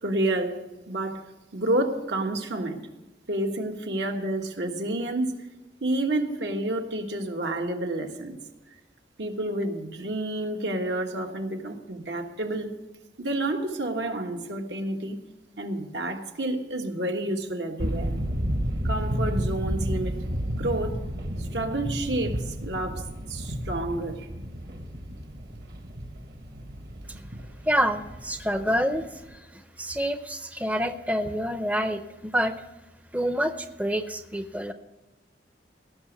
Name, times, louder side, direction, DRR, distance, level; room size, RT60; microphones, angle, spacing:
voice 1, 0.0-1.2 1.5-2.8 3.3-5.5 5.8-8.4 9.2-12.7 13.2-15.2 15.6-18.1 18.8-20.2 20.6-21.0 21.4-24.3, right 1 dB, 80° right, 3 dB, 1.5 m, -29 dB
sound 1, 17.8-29.3, equal, 55° right, 1.3 m, -32 dB
voice 2, 27.7-32.6 33.1-34.7, equal, 10° right, 9 dB, 0.5 m, -27 dB
17.5 x 6.1 x 8.1 m, 1.1 s
head